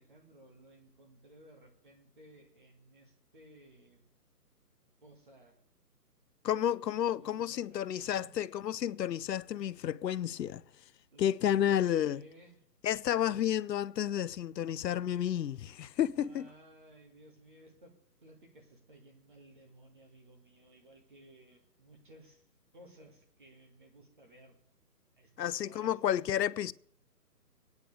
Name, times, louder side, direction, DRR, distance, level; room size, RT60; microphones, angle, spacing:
voice 1, 0.0-4.0 5.0-5.6 6.5-6.8 7.2-8.3 11.1-12.6 13.2-13.5 16.2-17.9 18.2-22.4 22.7-24.6 25.2-26.0, right 1 dB, 30° right, 1.9 m, -58 dB
voice 2, 6.4-10.6 11.2-12.2 12.8-16.5 25.4-26.7, left 10 dB, 90° left, 0.6 m, -31 dB
24.5 x 9.7 x 3.3 m
hypercardioid pair, 180°, 49 cm